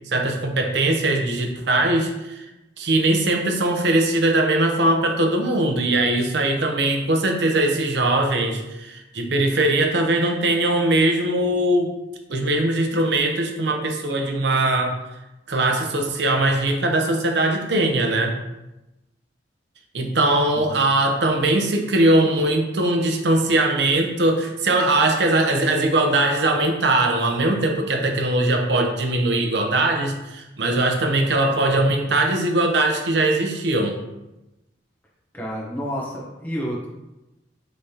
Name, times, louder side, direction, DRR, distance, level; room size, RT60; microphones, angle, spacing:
voice 1, 0.1-2.5 2.8-11.9 12.3-14.9 15.5-18.3 19.9-34.0, right 2 dB, 65° right, 3 dB, 0.7 m, -20 dB
voice 2, 20.5-20.9 35.3-36.9, equal, 10° left, -4 dB, 0.9 m, -30 dB
5.4 x 3.3 x 2.8 m, 0.97 s
head